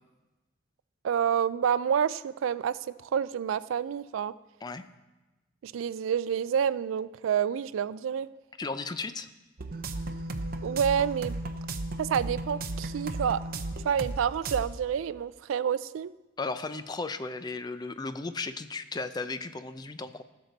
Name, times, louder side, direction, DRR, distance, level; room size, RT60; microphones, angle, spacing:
voice 1, 1.0-4.3 5.6-8.3 10.6-11.3 12.0-13.4 13.8-16.1, right 8 dB, 90° right, 17 dB, 0.3 m, -28 dB
voice 2, 8.6-9.3 16.4-20.2, left 3 dB, 20° left, 11 dB, 0.4 m, -35 dB
sound 1, 9.6-14.2 14.5-14.6, right 2 dB, 50° right, 0.6 m, -35 dB
16.0 x 6.6 x 4.0 m, 1.1 s
head